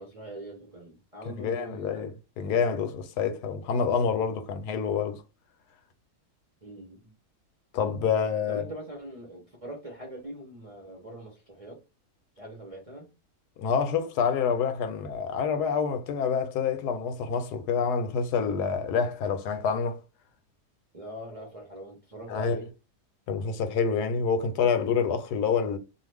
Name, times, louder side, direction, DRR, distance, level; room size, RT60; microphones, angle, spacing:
voice 1, 0.0-2.0 6.6-7.1 8.4-11.8 12.4-13.1 20.9-22.7, right 1 dB, 30° right, 0.7 m, -42 dB
voice 2, 1.3-2.1 2.4-5.2 7.7-8.7 13.6-20.0 22.3-22.6 23.3-25.8, left 6 dB, 85° left, 1.2 m, -27 dB
2.5 x 2.5 x 3.3 m
omnidirectional pair, 1.7 m